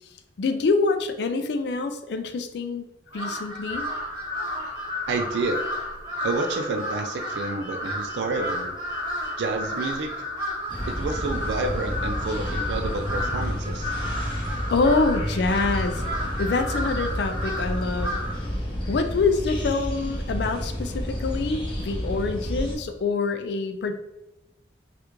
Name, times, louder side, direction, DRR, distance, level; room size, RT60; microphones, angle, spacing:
voice 1, 0.4-2.9 3.1-3.9 14.7-16.1 16.4-18.1 18.9-24.0, left 3 dB, 65° left, 7 dB, 0.4 m, -25 dB
Crow, 3.1-18.5, left 1 dB, 25° right, 1.2 m, -32 dB
voice 2, 5.1-5.6 6.2-8.7 9.4-10.2 10.8-14.0, right 3 dB, 75° right, 5 dB, 0.3 m, -29 dB
sound 1, 10.7-22.8, equal, 30° left, 0.6 m, -30 dB
3.4 x 2.4 x 3.0 m, 0.95 s
head